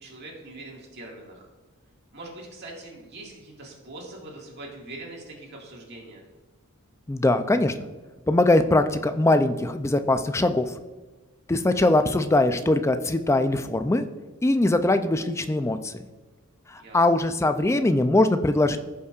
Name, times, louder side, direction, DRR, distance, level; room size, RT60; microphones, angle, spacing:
voice 1, 0.0-1.5 2.1-6.2 16.8-17.1, right 2 dB, 50° right, -2 dB, 1.9 m, -42 dB
voice 2, 7.1-7.7 8.3-10.7 11.5-14.0 14.4-16.0 16.9-18.8, left 2 dB, 15° left, 9 dB, 0.4 m, -21 dB
16.0 x 5.6 x 2.4 m, 1.3 s
head